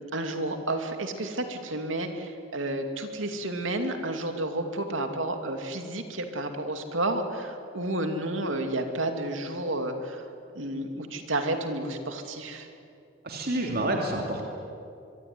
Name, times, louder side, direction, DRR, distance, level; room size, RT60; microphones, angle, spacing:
voice 1, 0.0-10.2 10.5-12.7, right 1 dB, 85° right, 5 dB, 2.6 m, -31 dB
voice 2, 13.2-14.5, right 1 dB, 55° right, 1 dB, 2.8 m, -28 dB
24.5 x 23.0 x 9.7 m, 2.6 s
head